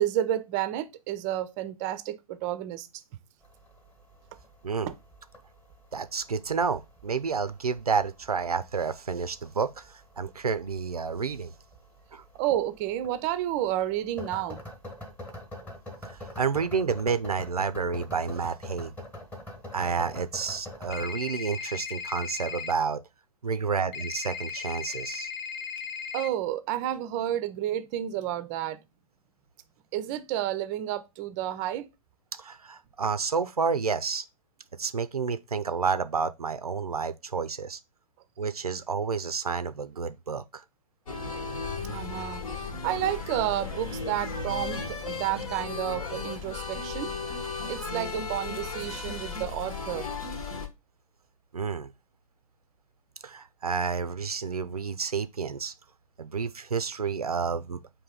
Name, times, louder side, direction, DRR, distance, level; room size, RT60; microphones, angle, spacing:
voice 1, 0.0-2.9 12.4-14.6 26.1-28.8 29.9-31.9 41.8-47.2 47.7-50.1, right 12 dB, 30° right, 0.5 m, -31 dB
sound 1, 3.4-21.0, left 1 dB, 10° left, 1.1 m, -46 dB
voice 2, 5.9-11.5 12.1-12.2 16.0-18.9 19.7-23.0 23.4-25.3 32.4-34.2 34.8-37.8 38.4-40.6 51.5-51.9 53.2-55.7 56.2-57.8, right 5 dB, 85° right, 0.4 m, -30 dB
sound 2, 20.9-22.7 23.9-26.3, left 6 dB, 30° left, 0.6 m, -37 dB
sound 3, 41.1-50.7, left 4 dB, 65° left, 1.1 m, -35 dB
5.2 x 2.7 x 3.7 m
figure-of-eight pair, 115°, 19 cm